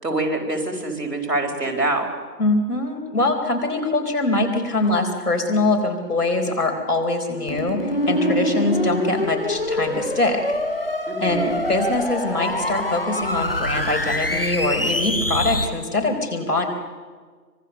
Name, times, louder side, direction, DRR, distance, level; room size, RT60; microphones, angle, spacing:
voice 1, 0.0-2.1 11.1-11.6, right 2 dB, 70° right, 2 dB, 4.5 m, -25 dB
voice 2, 2.4-10.4 11.2-16.6, left 2 dB, 65° left, 3 dB, 4.3 m, -23 dB
sound 1, 7.5-15.7, left 1 dB, 35° left, 1.0 m, -25 dB
24.5 x 21.0 x 6.8 m, 1.5 s
figure-of-eight pair, 175°, 49 cm